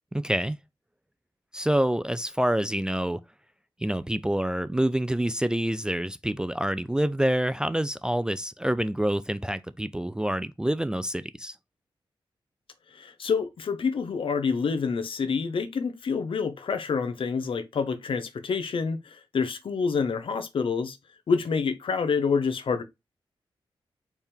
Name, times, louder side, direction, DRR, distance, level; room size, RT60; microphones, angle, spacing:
voice 1, 0.1-0.6 1.5-3.2 3.8-11.6, right 1 dB, 10° right, 0.3 m, -27 dB
voice 2, 12.9-21.0 21.3-22.8, left 5 dB, 65° left, 0.9 m, -27 dB
4.5 x 3.5 x 3.4 m
wide cardioid pair, 95°, 9 cm